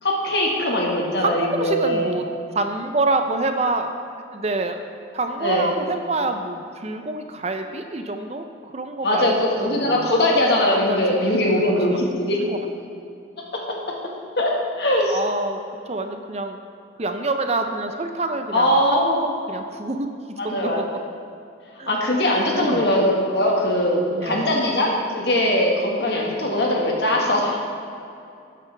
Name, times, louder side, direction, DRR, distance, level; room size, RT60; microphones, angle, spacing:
voice 1, 0.0-2.1 5.4-5.7 9.0-12.4 14.4-15.2 18.5-19.2 20.4-21.0 21.9-27.6, left 1 dB, 60° left, -1 dB, 1.7 m, -21 dB
voice 2, 1.2-2.3 2.5-3.9 4.3-4.8 5.1-8.4 8.7-10.2 10.9-11.0 11.6-12.6 15.1-15.6 15.9-16.6 17.0-19.0 19.5-20.1 20.4-20.8 21.8-21.9 22.5-22.9 24.1-24.7, right 2 dB, 35° right, 6 dB, 0.6 m, -27 dB
13.0 x 9.1 x 3.5 m, 2.6 s
head